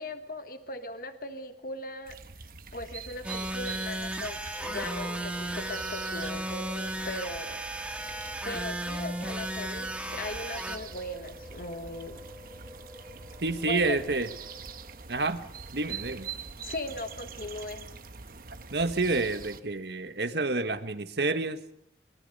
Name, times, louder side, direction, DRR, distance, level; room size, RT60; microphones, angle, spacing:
voice 1, 0.0-2.2 2.7-7.6 8.4-12.2 13.7-14.0 16.6-17.8, left 2 dB, 55° left, 8 dB, 1.4 m, -39 dB
sound 1, 2.0-19.6, right 5 dB, 55° right, 1.1 m, -44 dB
sound 2, 3.2-10.8, right 1 dB, 5° right, 1.5 m, -35 dB
sound 3, 4.5-15.1, equal, 15° left, 2.5 m, -48 dB
voice 2, 13.4-14.3 15.1-15.4 15.7-16.3 18.7-21.6, right 3 dB, 70° right, 9 dB, 1.4 m, -28 dB
23.5 x 22.5 x 5.4 m, 0.72 s
head